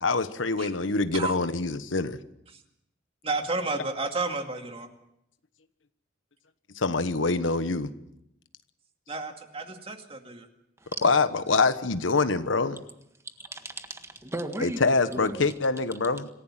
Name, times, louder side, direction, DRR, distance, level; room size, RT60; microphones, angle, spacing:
voice 1, 0.0-2.2 6.8-7.9 11.0-12.8 14.6-16.3, left 3 dB, 85° left, 1.2 m, -25 dB
voice 2, 3.2-4.9 9.1-10.5, right 3 dB, 30° right, 2.3 m, -32 dB
voice 3, 13.5-15.5, right 1 dB, 15° right, 1.6 m, -36 dB
26.5 x 15.5 x 7.5 m
head